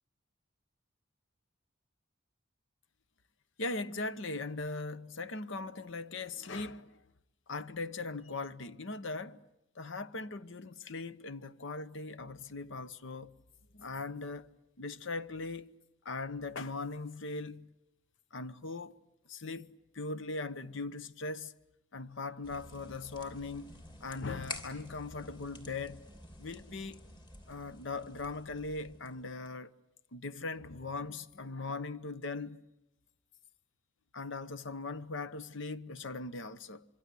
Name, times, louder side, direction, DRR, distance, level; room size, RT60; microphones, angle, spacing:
voice 1, 3.6-7.0 7.5-9.4 9.7-13.4 13.7-14.5 14.8-15.7 16.0-17.7 18.3-19.0 19.3-21.5 21.9-23.7 24.0-26.1 26.4-27.0 27.5-29.7 30.1-32.6 34.1-36.8, left 3 dB, 65° left, 0.9 m, -40 dB
sound 1, 22.4-29.5, left 2 dB, 25° left, 3.2 m, -50 dB
25.5 x 25.0 x 8.4 m
head